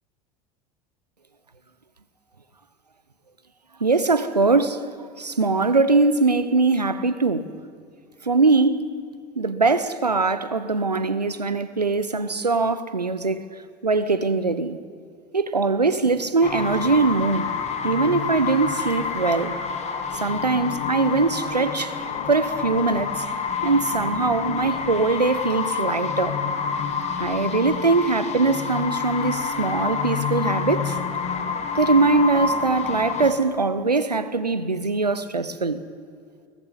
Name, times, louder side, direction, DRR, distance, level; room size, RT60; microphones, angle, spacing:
voice 1, 3.8-4.8 5.2-7.5 8.3-8.9 9.4-13.4 13.8-14.8 15.3-17.5 17.8-19.6 20.1-21.9 22.3-23.2 23.6-26.4 27.2-30.9 31.7-35.8, right 3 dB, 90° right, 1.0 m, -22 dB
sound 1, 16.4-33.3, left 5 dB, 35° left, 2.2 m, -28 dB
19.5 x 15.0 x 9.9 m
figure-of-eight pair, 75°, 20 cm